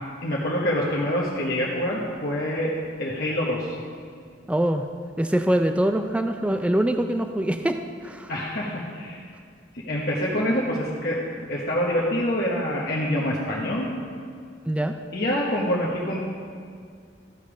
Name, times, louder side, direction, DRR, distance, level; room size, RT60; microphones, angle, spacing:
voice 1, 0.2-2.7 3.0-3.8 8.3-9.3 9.8-11.2 11.5-13.9 15.1-16.2, equal, 55° left, -5 dB, 1.0 m, -26 dB
voice 2, 4.5-4.8 5.2-8.3 14.7-14.9, right 1 dB, 5° right, 7 dB, 0.3 m, -24 dB
13.5 x 5.3 x 5.0 m, 2.2 s
head